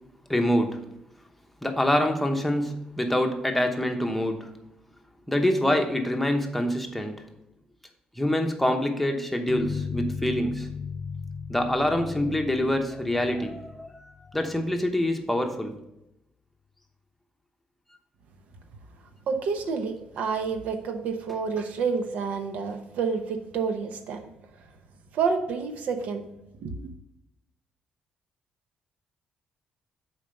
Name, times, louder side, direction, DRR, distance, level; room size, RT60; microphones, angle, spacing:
voice 1, 0.3-0.8 1.6-4.5 5.3-7.3 8.2-10.7 11.5-15.7, left 1 dB, 5° left, 4 dB, 0.9 m, -26 dB
sound 1, 9.5-15.0, left 6 dB, 65° left, 0.6 m, -37 dB
voice 2, 19.3-24.3 25.1-26.2 26.6-26.9, right 5 dB, 75° right, 7 dB, 0.8 m, -29 dB
7.2 x 4.5 x 5.2 m, 0.88 s
cardioid pair, 125°, 3 cm